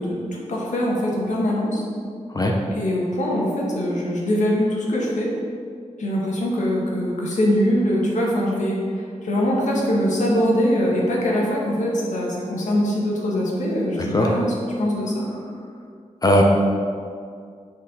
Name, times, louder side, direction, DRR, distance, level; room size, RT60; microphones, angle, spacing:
voice 1, 0.0-1.8 2.7-5.3 6.0-8.8 9.2-15.2, equal, 75° left, -3 dB, 1.2 m, -22 dB
voice 2, 2.4-2.5 14.1-14.3 16.2-16.4, left 1 dB, 30° left, 0 dB, 0.6 m, -17 dB
6.2 x 4.1 x 4.1 m, 2.2 s
wide cardioid pair, 155°, 13 cm